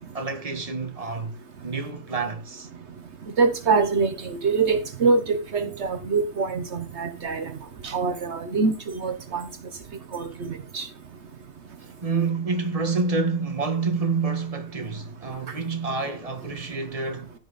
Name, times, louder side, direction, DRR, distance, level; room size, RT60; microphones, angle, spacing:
voice 1, 0.1-1.4 1.6-2.7 12.0-17.3, right 4 dB, 30° right, 1.6 m, -28 dB
voice 2, 3.4-7.5 7.8-9.4 10.1-10.9, right 4 dB, 70° right, 1.3 m, -24 dB
15.5 x 5.7 x 4.1 m
omnidirectional pair, 1.2 m